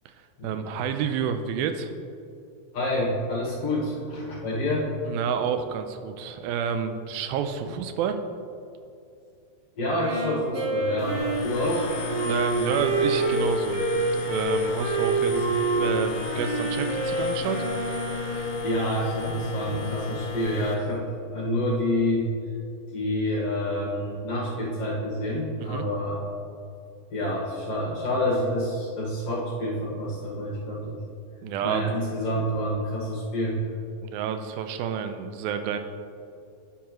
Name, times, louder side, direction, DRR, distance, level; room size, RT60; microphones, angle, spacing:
voice 1, 0.4-1.9 5.1-8.2 12.1-13.8 14.2-15.5 15.8-17.7 25.6-25.9 31.4-32.0 34.0-35.8, right 7 dB, 90° right, 8 dB, 2.4 m, -29 dB
voice 2, 2.7-4.9 9.8-11.9 15.3-15.4 18.3-22.3 22.9-26.2 27.1-31.0 31.6-33.6, left 1 dB, 50° left, -5 dB, 2.3 m, -28 dB
Wind instrument woodwind instrument, 10.0-18.7, right 3 dB, 70° right, 3.7 m, -27 dB
sound 1, 11.0-20.8, left 6 dB, 80° left, 1.9 m, -34 dB
9.4 x 9.1 x 3.1 m, 2.5 s
omnidirectional pair, 4.2 m